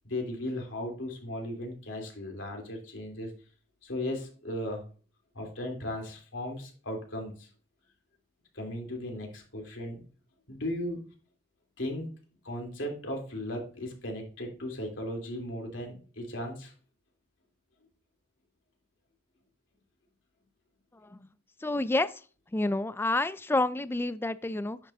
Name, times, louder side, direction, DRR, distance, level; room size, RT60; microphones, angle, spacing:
voice 1, 0.0-3.3 3.8-4.8 5.3-7.5 8.5-10.0 10.5-11.1 11.8-12.1 12.4-16.7, left 1 dB, 90° left, 1 dB, 2.9 m, -36 dB
voice 2, 21.6-22.1 22.5-24.8, left 2 dB, 10° left, 15 dB, 0.4 m, -28 dB
10.0 x 7.2 x 2.5 m, 0.38 s
head